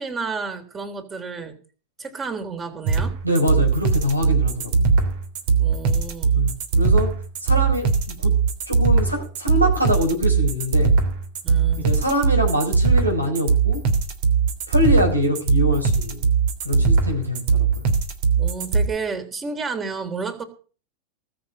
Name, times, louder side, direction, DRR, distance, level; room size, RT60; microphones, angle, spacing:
voice 1, 0.0-1.6 2.0-3.2 5.6-6.4 11.4-12.0 18.4-20.4, right 5 dB, 20° right, 7 dB, 3.5 m, -31 dB
sound 1, 2.9-18.9, right 5 dB, 50° right, 3.2 m, -19 dB
voice 2, 3.2-4.7 6.3-7.1 7.4-8.3 8.7-11.0 11.8-13.8 14.7-16.2 16.6-17.6, left 1 dB, 85° right, 2 dB, 4.9 m, -24 dB
19.5 x 6.9 x 8.0 m, 0.39 s
figure-of-eight pair, 90°, 0 cm